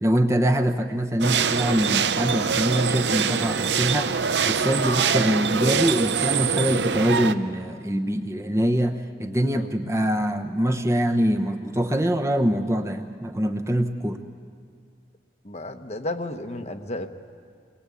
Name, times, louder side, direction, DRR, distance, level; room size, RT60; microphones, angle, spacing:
voice 1, 0.0-4.1 4.4-14.2, equal, 15° right, 4 dB, 0.9 m, -24 dB
sound 1, 1.2-7.3, right 6 dB, 75° right, 0.7 m, -24 dB
voice 2, 15.4-17.1, left 1 dB, 40° left, 6 dB, 1.0 m, -32 dB
27.5 x 22.0 x 8.5 m, 2.2 s
head